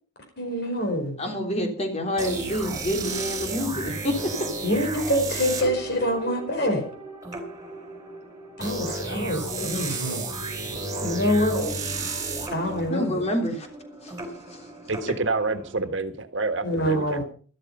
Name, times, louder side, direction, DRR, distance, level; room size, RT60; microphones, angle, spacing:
voice 1, 0.4-1.2 4.6-6.9 8.6-10.2 11.0-11.7 12.5-13.2 16.6-17.2, equal, 55° left, 4 dB, 4.8 m, -26 dB
voice 2, 1.2-4.2 12.9-13.7 14.0-14.1 14.5-14.6, equal, 35° left, 4 dB, 3.4 m, -27 dB
sound 1, 2.2-15.9, right 3 dB, 20° right, 4.1 m, -33 dB
voice 3, 14.9-17.2, right 3 dB, 65° right, 9 dB, 1.5 m, -28 dB
13.5 x 13.0 x 5.5 m, 0.41 s
head